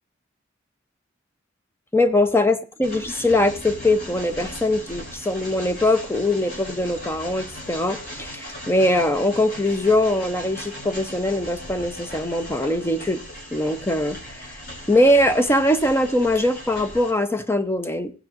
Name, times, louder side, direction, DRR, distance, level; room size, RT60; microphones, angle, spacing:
voice 1, 1.9-13.2 13.5-14.6 14.9-18.1, left 1 dB, 10° left, 0.7 m, -21 dB
Train, 2.8-17.1, equal, 55° left, 3.8 m, -38 dB
16.0 x 8.8 x 2.5 m
head